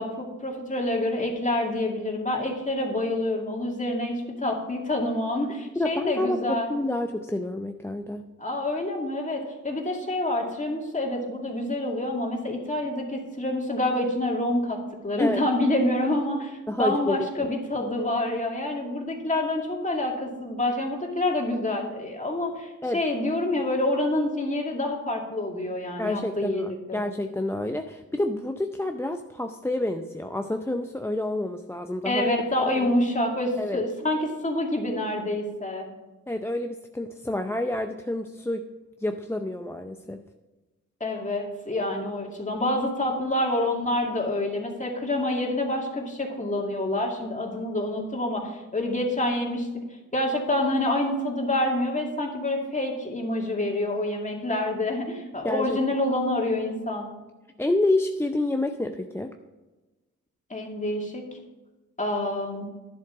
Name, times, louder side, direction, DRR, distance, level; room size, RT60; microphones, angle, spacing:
voice 1, 0.0-6.7 8.4-14.8 15.0-27.0 32.0-35.9 41.0-49.7 50.1-57.1 60.5-61.2 62.0-62.7, left 1 dB, 25° left, 1 dB, 2.3 m, -27 dB
voice 2, 5.8-8.3 15.2-15.4 16.7-17.5 22.8-23.0 26.0-32.3 32.7-32.9 33.6-33.8 36.3-38.7 39.0-40.2 55.4-55.8 57.6-59.3, left 1 dB, 10° left, 5 dB, 0.5 m, -28 dB
10.5 x 7.5 x 4.9 m, 1.1 s
cardioid pair, 80°, 31 cm